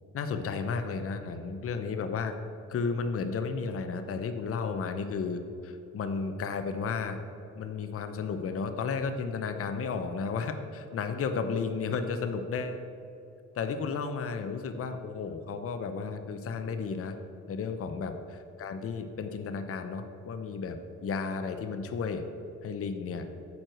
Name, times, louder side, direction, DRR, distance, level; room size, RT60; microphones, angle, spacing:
voice 1, 0.1-2.3 2.7-7.2 7.6-12.8 13.5-17.2 17.5-20.8 21.0-22.2 22.6-23.3, left 5 dB, 50° left, 8 dB, 0.7 m, -33 dB
9.6 x 4.7 x 7.6 m, 2.7 s
cardioid pair, 90°, 30 cm